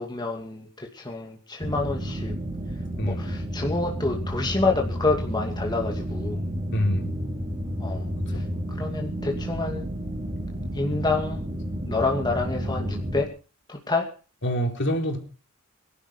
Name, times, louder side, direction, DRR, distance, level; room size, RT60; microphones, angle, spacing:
voice 1, 0.0-2.3 3.0-6.4 7.8-9.9 10.7-11.5 11.9-13.3 13.7-14.1, left 3 dB, 20° left, 1 dB, 2.4 m, -28 dB
sound 1, 1.6-13.2, equal, 25° right, 4.0 m, -31 dB
voice 2, 6.7-7.1 8.3-8.5 14.4-15.2, equal, 55° left, 3 dB, 4.0 m, -26 dB
22.5 x 12.0 x 5.1 m, 0.37 s
head